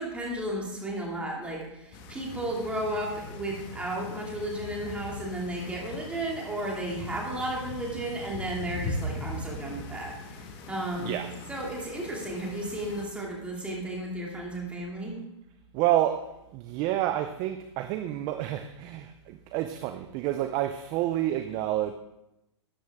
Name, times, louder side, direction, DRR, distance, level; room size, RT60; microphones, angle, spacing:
voice 1, 0.0-11.1 11.5-15.2, right 1 dB, 10° right, 2.5 m, -34 dB
sound 1, 1.9-13.0, left 1 dB, 30° left, 1.3 m, -40 dB
voice 2, 15.7-21.9, right 13 dB, 25° right, 0.5 m, -29 dB
13.0 x 9.6 x 3.6 m
hypercardioid pair, 145°, 15 cm